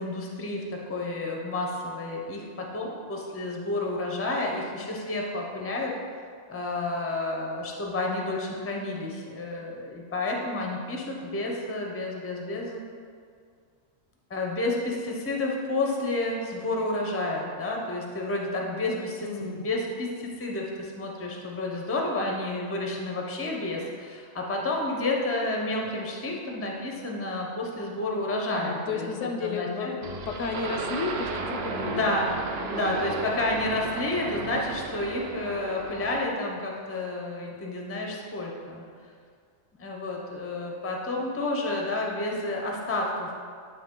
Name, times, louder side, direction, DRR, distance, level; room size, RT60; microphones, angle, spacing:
voice 1, 0.0-5.9 6.5-12.8 14.3-29.1 29.4-29.9 31.8-32.4 32.7-38.8 39.8-43.3, left 2 dB, 15° left, 0 dB, 0.5 m, -30 dB
voice 2, 19.2-19.6 28.5-32.2 32.6-33.0, left 5 dB, 75° left, 4 dB, 1.0 m, -33 dB
sound 1, 30.0-36.3, right 4 dB, 60° right, 0.8 m, -34 dB
9.7 x 3.3 x 3.8 m, 2.2 s
omnidirectional pair, 1.3 m